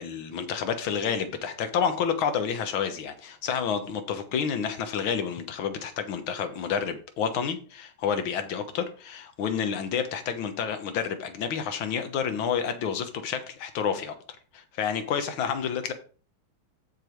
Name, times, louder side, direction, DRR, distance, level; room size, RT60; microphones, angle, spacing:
voice 1, 0.0-14.1 14.5-15.9, left 7 dB, 80° left, 1.9 m, -29 dB
15.0 x 5.0 x 3.1 m
omnidirectional pair, 2.2 m